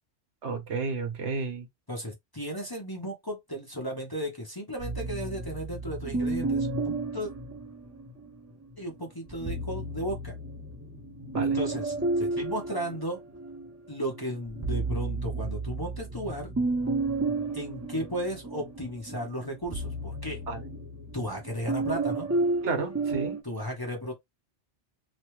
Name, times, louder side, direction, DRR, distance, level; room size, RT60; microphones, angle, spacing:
voice 1, 0.4-1.7 11.3-11.6 20.5-20.6 22.6-23.4, right 4 dB, 75° right, 1.3 m, -31 dB
voice 2, 1.9-7.3 8.8-10.3 11.5-13.2 13.9-16.5 17.5-20.4 21.1-22.3 23.4-24.1, equal, 20° left, 0.8 m, -35 dB
sound 1, 4.8-8.3 9.3-13.7 14.1-23.4, right 3 dB, 20° right, 0.5 m, -32 dB
3.1 x 2.2 x 3.0 m
omnidirectional pair, 1.2 m